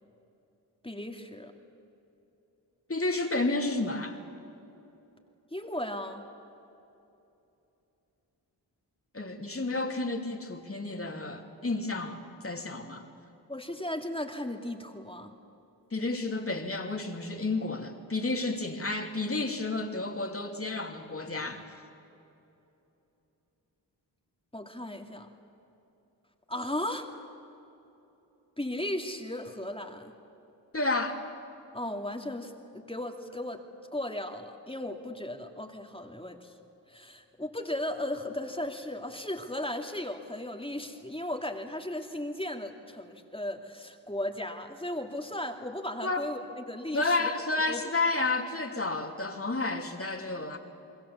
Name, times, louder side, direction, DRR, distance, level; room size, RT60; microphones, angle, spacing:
voice 1, 0.8-1.5 5.5-6.2 13.5-15.3 24.5-25.3 26.5-27.1 28.6-30.1 31.7-33.6 33.9-36.5 36.9-47.3 47.7-47.8, left 1 dB, 10° left, 3 dB, 2.4 m, -36 dB
voice 2, 2.9-4.2 9.1-13.0 15.9-21.7 30.7-31.2 46.0-46.3 46.9-50.6, left 2 dB, 30° left, 4 dB, 2.9 m, -31 dB
27.0 x 22.0 x 7.3 m, 2.9 s
supercardioid pair, 40°, 44 cm